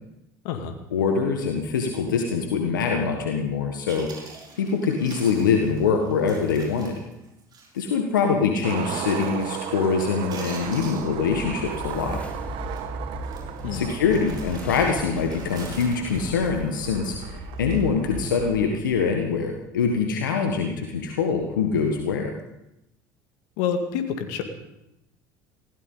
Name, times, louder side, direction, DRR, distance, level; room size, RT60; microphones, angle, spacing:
voice 1, 0.9-4.1 4.6-6.9 7.7-12.2 13.7-22.3, left 5 dB, 85° left, 3 dB, 1.6 m, -24 dB
Chewing mastication, 3.6-3.7 3.9-7.9 8.2-8.3 8.8-9.1 9.4-9.9 10.1-11.7 11.9-12.2 12.6-12.8 13.2-17.2 17.6-17.8, right 4 dB, 45° right, 6.2 m, -46 dB
Skateboard, 8.6-18.8, right 11 dB, 60° right, 1.4 m, -36 dB
sound 1, 11.1-19.7, equal, 15° left, 5.2 m, -38 dB
voice 2, 13.6-13.9 23.6-24.4, left 7 dB, 70° left, 6 dB, 2.0 m, -27 dB
20.0 x 17.0 x 3.9 m, 0.87 s
hypercardioid pair, 70°, 10 cm